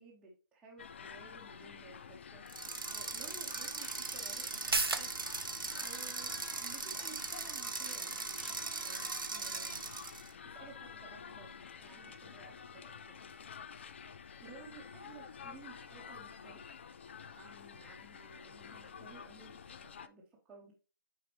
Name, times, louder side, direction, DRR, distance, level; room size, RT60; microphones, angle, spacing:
voice 1, 0.0-5.1 5.7-9.9 10.4-13.3 14.4-16.7 17.4-19.8 20.0-20.7, right 4 dB, 5° right, -6 dB, 1.0 m, -55 dB
sound 1, 0.8-20.1, left 6 dB, 30° left, 0.4 m, -50 dB
sound 2, 2.5-10.3, right 4 dB, 65° right, 1.0 m, -40 dB
sound 3, 4.5-11.7 12.0-12.1, right 3 dB, 85° right, 0.8 m, -42 dB
9.0 x 4.1 x 3.0 m, 0.34 s
figure-of-eight pair, 150°, 12 cm